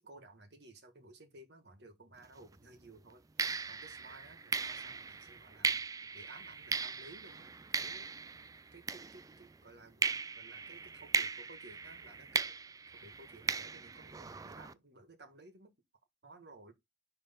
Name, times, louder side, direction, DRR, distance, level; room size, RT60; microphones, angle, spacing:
voice 1, 0.0-8.1 8.7-12.6 12.9-15.7 16.2-16.7, right 2 dB, 70° right, 1.7 m, -56 dB
sound 1, 2.2-2.5 3.4-9.6 10.0-14.7, right 5 dB, 20° right, 0.3 m, -38 dB
9.8 x 3.4 x 3.6 m
head